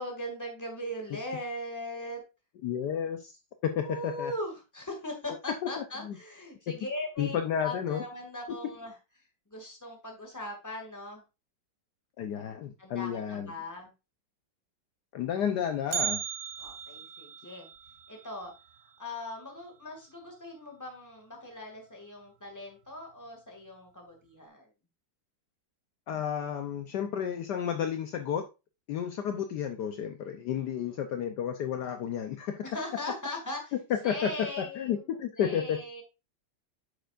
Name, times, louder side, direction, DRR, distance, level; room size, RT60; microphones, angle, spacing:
voice 1, 0.0-2.2 3.7-7.4 7.6-8.9 9.5-11.2 12.8-13.9 16.6-17.7 18.1-18.5 19.0-24.7 30.6-31.0 32.6-33.7 34.0-35.0 35.4-36.0, left 1 dB, 10° left, 2.0 m, -39 dB
voice 2, 2.6-3.3 3.6-4.3 5.8-6.2 7.2-8.0 12.2-13.5 15.1-16.2 26.1-28.4 28.9-32.8 33.9-35.8, left 8 dB, 70° left, 1.2 m, -31 dB
Bell, 15.9-20.0 20.3-20.4 20.9-21.0 21.8-21.9 22.6-22.9 23.3-23.4, right 9 dB, 65° right, 0.7 m, -38 dB
9.1 x 6.7 x 2.5 m
omnidirectional pair, 2.0 m